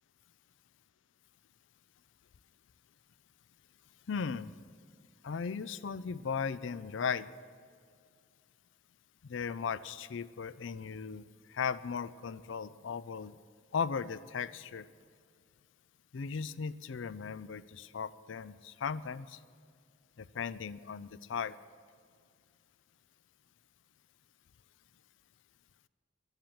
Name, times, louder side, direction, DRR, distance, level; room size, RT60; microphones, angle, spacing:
voice 1, 4.1-4.5 5.2-7.3 9.3-13.4 13.7-14.9 16.1-19.4 20.2-21.5, left 6 dB, 80° left, 17 dB, 0.5 m, -37 dB
12.5 x 10.5 x 8.8 m, 2.2 s
head